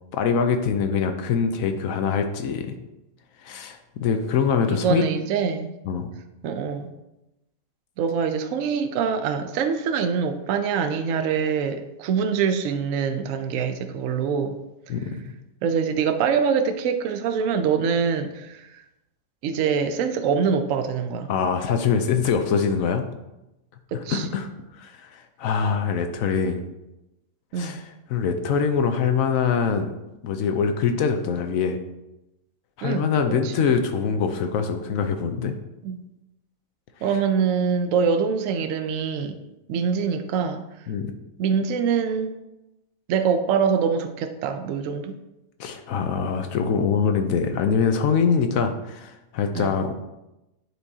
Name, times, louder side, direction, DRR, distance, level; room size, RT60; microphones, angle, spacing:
voice 1, 0.1-2.7 3.4-5.0 5.9-6.1 14.9-15.1 21.3-23.0 24.1-24.5 24.8-26.6 27.5-29.9 30.2-31.8 32.8-35.6 40.9-41.1 45.6-49.9, left 6 dB, 80° left, 6 dB, 1.0 m, -24 dB
voice 2, 4.7-5.8 6.4-6.8 8.0-14.6 15.6-18.6 19.4-21.3 23.9-24.3 27.5-27.8 32.8-33.1 33.4-33.5 35.8-36.0 37.0-39.3 39.7-40.6 41.4-42.3 43.1-45.1 49.5-49.8, right 6 dB, 75° right, 8 dB, 0.9 m, -24 dB
9.9 x 4.6 x 2.7 m, 0.95 s
omnidirectional pair, 1.4 m